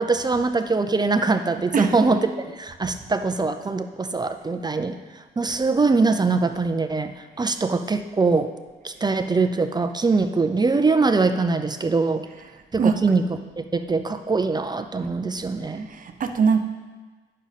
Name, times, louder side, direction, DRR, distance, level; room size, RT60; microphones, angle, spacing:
voice 1, 0.0-8.5 8.8-12.3 12.7-15.9, right 3 dB, 20° right, 8 dB, 0.5 m, -23 dB
voice 2, 15.9-16.6, right 5 dB, 45° right, 6 dB, 0.8 m, -21 dB
9.0 x 6.3 x 4.1 m, 1.3 s
cardioid pair, 90°, 20 cm